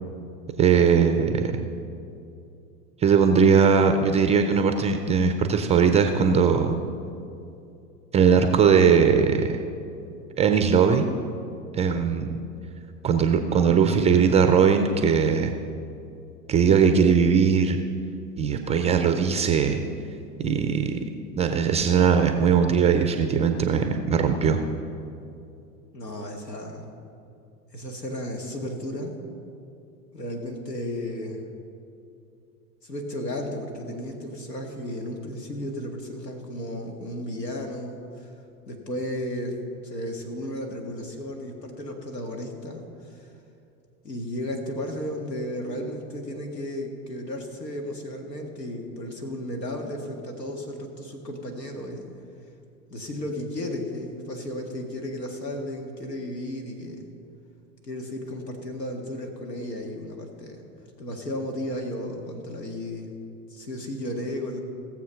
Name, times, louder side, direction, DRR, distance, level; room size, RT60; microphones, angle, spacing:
voice 1, 0.6-1.6 3.0-6.8 8.1-9.6 10.4-11.0 11.7-12.4 13.0-15.5 16.5-17.8 18.4-19.8 20.4-21.0 21.4-24.6, right 6 dB, 15° right, 7 dB, 0.4 m, -20 dB
voice 2, 25.9-26.9 27.7-29.2 30.1-31.4 32.8-38.3 38.7-43.3 44.0-52.1 52.9-57.1 57.8-60.6 61.0-63.1 63.5-64.6, left 1 dB, 90° left, 3 dB, 1.9 m, -34 dB
17.0 x 7.2 x 5.7 m, 2.6 s
hypercardioid pair, 95°, 48 cm